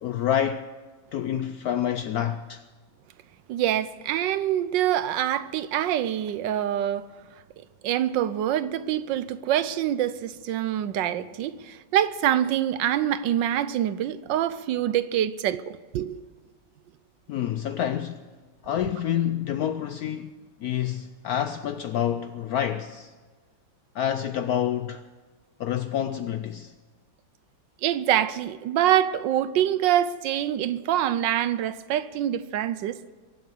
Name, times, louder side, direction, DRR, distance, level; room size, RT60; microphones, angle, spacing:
voice 1, 0.0-0.7 1.1-2.6 17.3-18.2 18.6-23.1 23.9-25.0 25.6-26.7, left 10 dB, 75° left, 0.8 m, -28 dB
voice 2, 3.5-7.0 7.8-16.1 27.8-33.0, right 11 dB, 75° right, 1.2 m, -25 dB
23.0 x 7.7 x 6.8 m
omnidirectional pair, 2.1 m